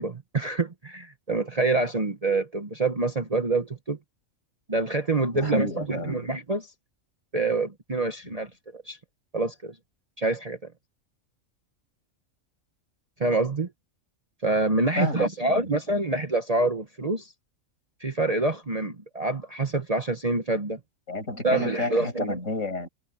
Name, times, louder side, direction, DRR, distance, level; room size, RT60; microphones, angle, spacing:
voice 1, 0.0-4.0 4.7-6.7 7.3-9.0 9.3-9.7 10.2-10.6 13.2-13.7 14.4-17.3 18.0-20.8 21.4-22.4, right 2 dB, 30° right, 1.1 m, -26 dB
voice 2, 5.3-6.3 8.2-8.3 15.0-15.7 21.1-22.9, left 2 dB, 65° left, 6.1 m, -31 dB
omnidirectional pair, 1.4 m